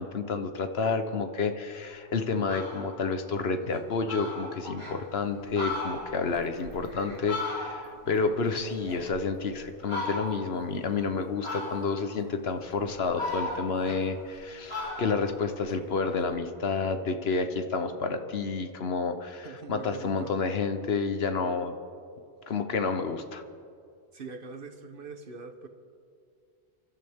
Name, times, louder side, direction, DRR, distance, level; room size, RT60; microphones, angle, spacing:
voice 1, 0.0-21.7 22.5-23.4, left 4 dB, 65° left, 8 dB, 1.2 m, -30 dB
Fowl, 1.8-1.9 2.3-2.9 3.4-3.5 3.8-3.9 4.1-5.0 5.4-8.0 8.4-9.4 9.8-10.5 11.4-12.1 12.6-14.4 14.7-16.3, left 2 dB, 25° left, 4.1 m, -36 dB
voice 2, 19.4-20.3 24.1-25.7, right 4 dB, 55° right, 8 dB, 1.2 m, -43 dB
28.0 x 13.0 x 3.6 m, 2.4 s
omnidirectional pair, 1.1 m